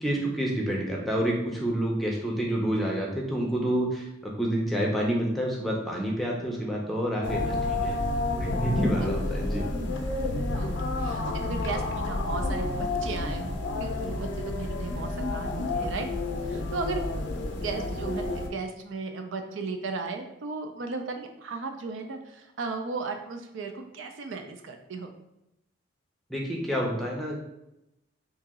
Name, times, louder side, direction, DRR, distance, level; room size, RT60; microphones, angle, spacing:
voice 1, 0.0-8.0 8.4-9.6 26.3-27.4, right 1 dB, ahead, -2 dB, 0.5 m, -28 dB
sound 1, 7.2-18.5, left 2 dB, 65° left, 0.5 m, -30 dB
voice 2, 11.0-16.1 16.5-17.0 17.5-25.1, right 4 dB, 75° right, 5 dB, 0.4 m, -35 dB
2.8 x 2.8 x 3.5 m, 0.91 s
head